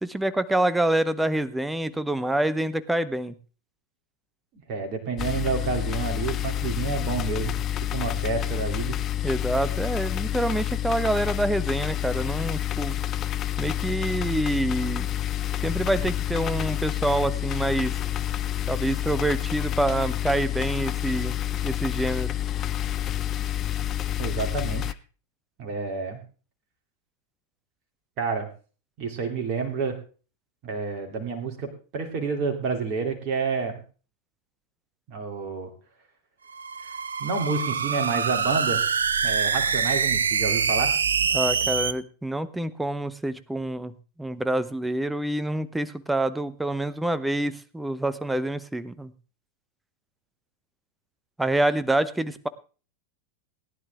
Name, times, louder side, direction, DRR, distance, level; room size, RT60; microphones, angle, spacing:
voice 1, 0.0-3.3 9.2-13.0 13.6-15.1 15.6-18.0 18.7-21.3 21.6-22.3 41.3-43.9 44.2-49.1 51.4-52.5, right 1 dB, 5° right, 16 dB, 0.7 m, -26 dB
voice 2, 4.7-9.0 24.2-24.9 25.6-26.2 28.2-28.5 29.0-30.0 30.6-33.8 35.1-35.7 36.8-36.9 37.2-38.8 39.2-41.0, right 5 dB, 40° right, 4 dB, 2.6 m, -29 dB
sound 1, 5.2-24.9, left 12 dB, 30° left, 0.5 m, -28 dB
sound 2, 36.5-41.9, right 6 dB, 70° right, 0.6 m, -25 dB
18.0 x 10.5 x 3.5 m, 0.37 s
figure-of-eight pair, 90°, 0 cm